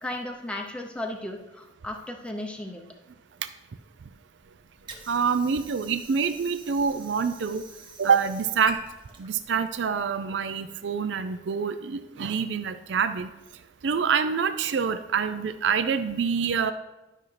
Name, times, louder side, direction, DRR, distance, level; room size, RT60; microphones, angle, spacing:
voice 1, 0.0-2.8, left 1 dB, 5° left, 1 dB, 0.6 m, -35 dB
Water / Sink (filling or washing), 4.4-10.4, right 3 dB, 25° right, 0.9 m, -47 dB
voice 2, 5.1-7.6 8.0-8.8 9.2-13.3 13.8-16.7, right 6 dB, 70° right, 10 dB, 0.4 m, -26 dB
11.5 x 5.6 x 3.3 m, 1.0 s
head